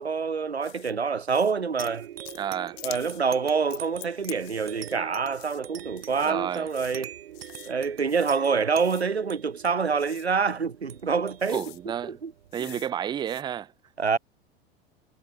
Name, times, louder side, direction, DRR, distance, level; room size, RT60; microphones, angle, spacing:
voice 1, 0.0-2.1 2.8-7.1 7.7-11.6 12.1-12.3 12.6-12.7 14.0-14.2, right 5 dB, 80° right, 1.7 m, -26 dB
sound 1, 0.6-0.9 1.3-1.5 1.8-2.5 2.8-3.2 3.7-5.0 5.3-5.6 6.0-6.3 6.7-7.0 7.3-7.7 8.1-8.4 8.8-9.1 10.0-10.3 11.0-11.1 11.4-11.8 12.5-12.9 13.2-13.4, left 30 dB, 50° left, 2.1 m, -45 dB
sound 2, 1.8-12.9, right 11 dB, 65° right, 3.1 m, -44 dB
voice 2, 2.3-2.8 6.2-6.7 11.5-12.2 12.5-13.7, right 9 dB, 15° right, 0.4 m, -31 dB
figure-of-eight pair, 80°, 32 cm